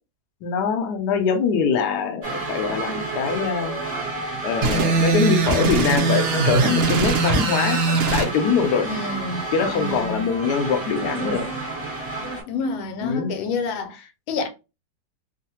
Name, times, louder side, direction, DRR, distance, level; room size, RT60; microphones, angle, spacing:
voice 1, 0.4-3.8 4.4-8.9 9.5-11.5 13.0-13.3, left 6 dB, 70° left, 1.1 m, -23 dB
sound 1, 2.2-12.4, right 3 dB, 30° right, 0.7 m, -31 dB
sound 2, 4.6-8.3, right 4 dB, 75° right, 0.7 m, -21 dB
voice 2, 8.8-10.3 12.5-14.5, left 4 dB, 85° left, 1.4 m, -29 dB
3.2 x 2.0 x 2.8 m
omnidirectional pair, 2.1 m